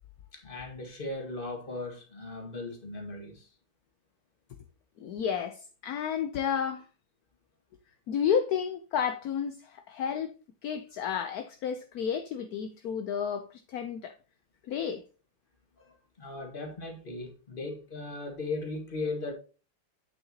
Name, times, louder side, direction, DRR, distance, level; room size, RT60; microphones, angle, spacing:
voice 1, 0.3-3.5 15.8-19.3, left 2 dB, 25° left, 1.9 m, -38 dB
voice 2, 5.0-6.9 8.1-10.3 10.6-14.1 14.7-15.0, left 8 dB, 65° left, 1.0 m, -31 dB
8.4 x 6.7 x 2.8 m
omnidirectional pair, 2.1 m